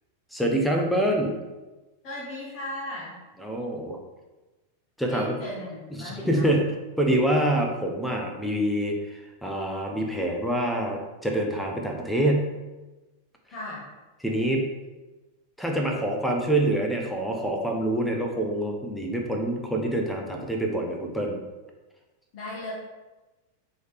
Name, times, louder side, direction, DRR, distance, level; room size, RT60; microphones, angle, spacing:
voice 1, 0.3-1.3 3.4-4.0 5.0-5.4 5.9-12.5 14.2-14.7 15.6-21.4, right 1 dB, ahead, 0 dB, 0.5 m, -26 dB
voice 2, 2.0-3.2 5.1-6.5 13.5-13.9 22.3-22.7, left 1 dB, 40° left, -7 dB, 0.8 m, -37 dB
3.1 x 2.8 x 2.4 m, 1.1 s
figure-of-eight pair, 90°, 0 cm